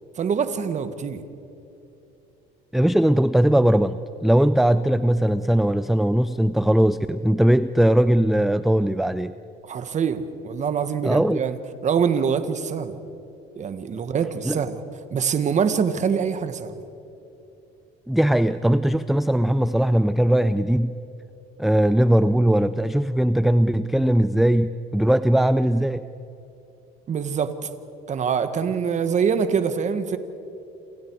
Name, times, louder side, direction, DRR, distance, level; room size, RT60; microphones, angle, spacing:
voice 1, 0.2-1.2 9.7-13.0 13.6-14.8 15.1-16.8 27.1-27.7 28.1-30.2, right 6 dB, 35° right, 10 dB, 1.6 m, -24 dB
voice 2, 2.7-9.3 11.0-11.4 14.4-14.6 18.1-20.9 21.6-26.1, right 1 dB, ahead, 13 dB, 0.4 m, -20 dB
29.0 x 27.5 x 4.8 m, 2.9 s
cardioid pair, 125°, 20 cm